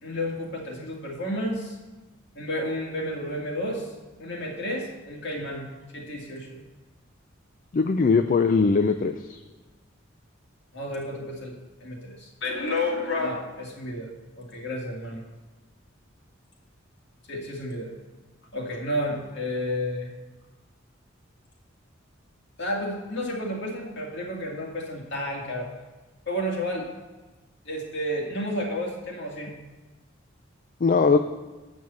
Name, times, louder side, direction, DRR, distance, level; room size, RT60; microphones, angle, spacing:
voice 1, 0.0-1.8 2.4-5.7 5.9-6.6 10.7-14.1 14.4-15.2 17.3-17.9 18.5-20.1 22.6-25.7 26.3-26.9 27.7-29.5, left 1 dB, 60° left, -1 dB, 2.2 m, -31 dB
voice 2, 7.7-9.4 30.8-31.2, left 4 dB, 40° left, 8 dB, 0.4 m, -20 dB
8.6 x 6.2 x 7.0 m, 1.2 s
head